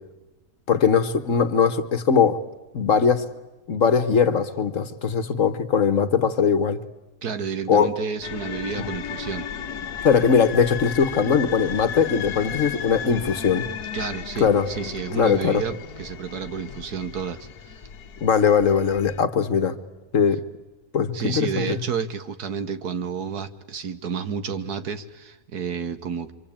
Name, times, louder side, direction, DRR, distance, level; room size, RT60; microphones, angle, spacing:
voice 1, 0.7-2.4 2.7-3.2 3.7-6.8 7.7-7.9 8.8-8.9 10.0-13.6 14.4-14.7 15.1-15.6 18.2-19.8 20.1-20.4 20.9-21.8, left 6 dB, 55° left, 1.6 m, -20 dB
voice 2, 7.2-9.5 13.9-17.8 21.1-26.3, right 6 dB, 80° right, 1.9 m, -30 dB
sound 1, 8.2-19.2, left 8 dB, 80° left, 1.7 m, -35 dB
26.5 x 25.0 x 8.8 m
omnidirectional pair, 1.6 m